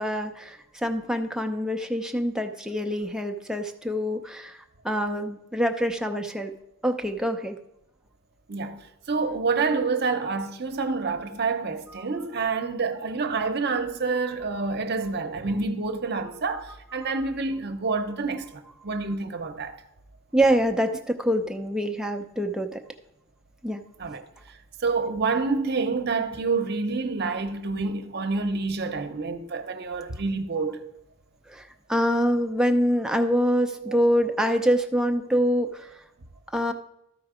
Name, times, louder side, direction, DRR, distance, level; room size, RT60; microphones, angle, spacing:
voice 1, 0.0-4.6 4.8-6.5 6.8-7.6 20.3-22.8 23.6-23.8 31.5-35.9 36.5-36.7, equal, 5° right, 0.5 m, -25 dB
voice 2, 8.5-8.8 9.1-19.8 24.0-24.2 24.8-30.8 33.8-34.0, right 4 dB, 55° right, 0.8 m, -28 dB
13.0 x 4.5 x 5.0 m
head